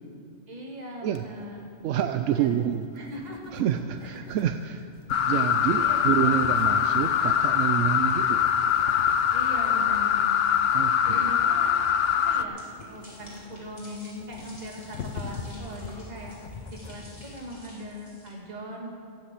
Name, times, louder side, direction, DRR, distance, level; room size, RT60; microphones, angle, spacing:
voice 1, 0.5-1.7 2.4-2.7 3.0-3.4 4.0-4.3 5.6-6.3 7.8-8.3 9.3-10.4 11.1-16.3 16.7-18.9, equal, 35° right, -1 dB, 2.0 m, -40 dB
sound 1, 1.1-17.4, left 5 dB, 80° left, 1.2 m, -44 dB
voice 2, 1.8-3.1 3.5-4.9 5.3-8.4 10.7-11.3, right 10 dB, 85° right, 8 dB, 0.9 m, -28 dB
sound 2, 5.1-12.4, left 8 dB, 65° left, 0.7 m, -23 dB
sound 3, 12.5-18.3, left 2 dB, 30° left, 3.3 m, -48 dB
13.0 x 8.4 x 8.3 m, 2.4 s
omnidirectional pair, 1.2 m